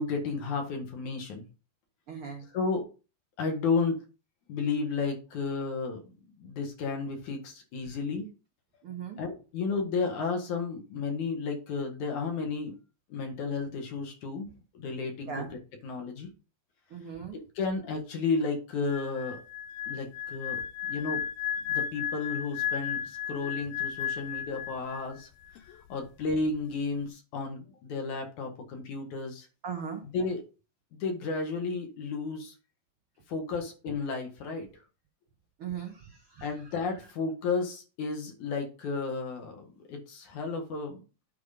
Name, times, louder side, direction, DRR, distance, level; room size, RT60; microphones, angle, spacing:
voice 1, 0.0-1.4 2.5-2.9 3.4-4.0 4.5-6.0 6.4-8.3 9.2-12.7 13.1-14.5 14.7-15.3 15.8-16.3 17.3-19.4 19.9-20.6 20.9-21.2 21.7-25.3 25.9-29.5 30.1-30.4 31.0-32.5 33.3-34.7 36.4-41.0, left 4 dB, 60° left, 3 dB, 2.7 m, -32 dB
voice 2, 2.1-2.4 8.8-9.2 15.3-15.5 16.9-17.4 29.6-30.0 35.6-36.5, right 7 dB, 90° right, 2 dB, 1.2 m, -38 dB
sound 1, 18.8-25.2 25.5-25.8, left 9 dB, 85° left, 2.4 m, -34 dB
9.5 x 4.8 x 5.1 m, 0.33 s
omnidirectional pair, 4.4 m